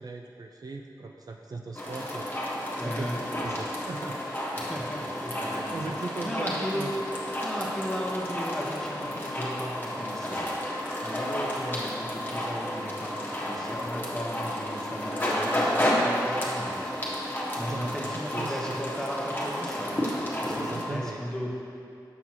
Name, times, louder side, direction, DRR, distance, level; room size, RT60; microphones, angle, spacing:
voice 1, 0.0-2.3 2.8-3.1 3.4-4.2 5.4-6.9 17.6-18.8 20.6-21.2, right 3 dB, 50° right, 2 dB, 0.4 m, -38 dB
sound 1, 1.7-20.8, left 1 dB, 25° left, 1.4 m, -31 dB
voice 2, 2.8-3.2 4.6-5.9 6.2-6.9 7.4-10.6 11.0-16.9 17.3-21.6, equal, 5° left, -3 dB, 1.1 m, -36 dB
5.8 x 5.8 x 2.9 m, 2.5 s
cardioid pair, 40°, 8 cm